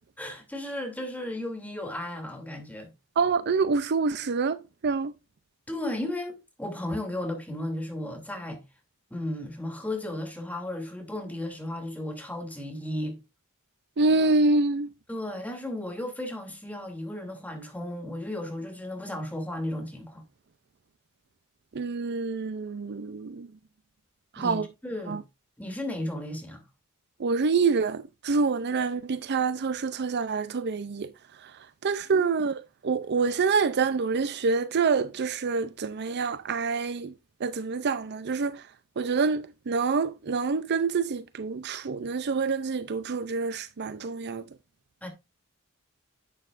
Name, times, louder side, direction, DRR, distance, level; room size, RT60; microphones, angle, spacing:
voice 1, 0.2-2.9 5.7-8.6 9.1-13.2 15.1-20.2 24.4-25.2 25.6-26.6 45.0-45.1, left 1 dB, 5° left, 2.8 m, -34 dB
voice 2, 3.2-5.1 14.0-14.9 21.7-23.5 24.3-24.7 25.1-25.2 27.2-31.1 31.4-31.5 31.8-32.5 32.8-37.1 37.4-38.7 39.0-44.5, right 4 dB, 50° right, 0.5 m, -26 dB
11.0 x 8.4 x 2.5 m
head